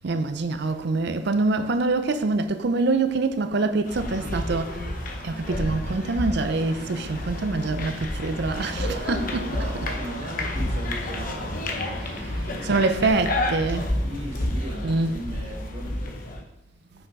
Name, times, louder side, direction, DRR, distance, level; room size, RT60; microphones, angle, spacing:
voice 1, 0.0-4.9 5.2-9.9 12.0-12.1 12.3-13.9 14.8-15.2, right 3 dB, 60° right, 0.5 m, -25 dB
sound 1, 3.9-16.4, left 1 dB, 45° left, 1.0 m, -30 dB
voice 2, 9.5-12.8 13.8-15.9, right 1 dB, 35° right, 1.5 m, -38 dB
6.0 x 5.4 x 4.7 m
head